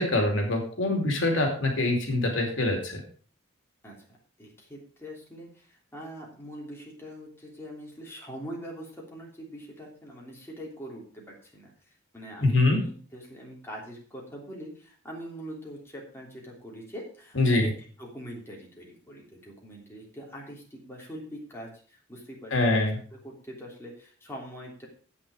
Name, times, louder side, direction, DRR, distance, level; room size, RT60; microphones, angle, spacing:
voice 1, 0.0-3.0 12.4-12.8 17.3-17.7 22.5-23.0, left 2 dB, 75° left, 2 dB, 2.7 m, -24 dB
voice 2, 3.8-11.7 12.1-17.4 18.0-22.5 23.2-24.9, equal, 10° left, -3 dB, 3.2 m, -43 dB
10.0 x 8.5 x 4.9 m, 0.42 s
head